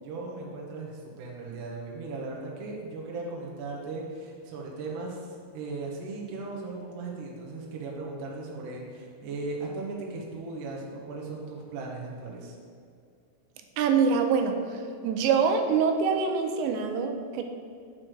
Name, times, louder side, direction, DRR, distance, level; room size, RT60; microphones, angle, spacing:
voice 1, 0.0-12.6, right 3 dB, 70° right, -2 dB, 2.0 m, -37 dB
voice 2, 13.8-14.6 15.0-17.4, right 6 dB, 90° right, 5 dB, 2.9 m, -24 dB
9.7 x 7.6 x 3.3 m, 2.3 s
omnidirectional pair, 5.1 m